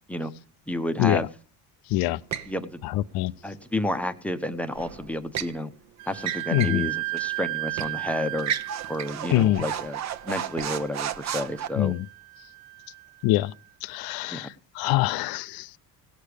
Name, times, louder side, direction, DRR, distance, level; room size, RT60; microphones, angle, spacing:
voice 1, 0.7-1.3 2.4-2.8 3.4-5.7 6.1-8.5 8.9-11.9 14.3-14.5, left 1 dB, 5° left, 0.8 m, -31 dB
sound 1, 2.3-2.5 4.7-5.6 6.2-6.8 7.2-7.3 7.8-8.0 8.4-11.7, right 9 dB, 45° right, 0.8 m, -33 dB
voice 2, 2.9-3.3 6.5-6.9 9.3-9.6 11.8-12.0 13.2-13.5 13.8-14.5 14.8-15.8, left 16 dB, 70° left, 0.5 m, -24 dB
Wind instrument woodwind instrument, 6.0-13.4, right 20 dB, 75° right, 0.6 m, -35 dB
17.0 x 6.6 x 5.1 m
cardioid pair, 115°, 38 cm